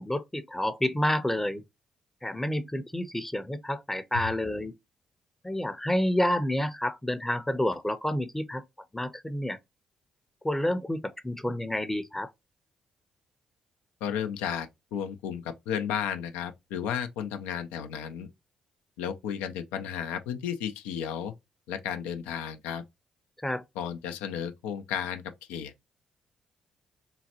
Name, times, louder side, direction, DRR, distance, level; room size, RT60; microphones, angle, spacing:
voice 1, 0.0-1.6 2.2-4.7 5.4-8.6 8.9-9.6 10.4-12.3 23.4-23.6, left 1 dB, 10° left, 0.6 m, -29 dB
voice 2, 14.0-18.3 19.0-21.3 21.7-22.8 23.8-25.7, left 8 dB, 75° left, 0.5 m, -33 dB
3.8 x 2.2 x 2.8 m
hypercardioid pair, 40°, 2 cm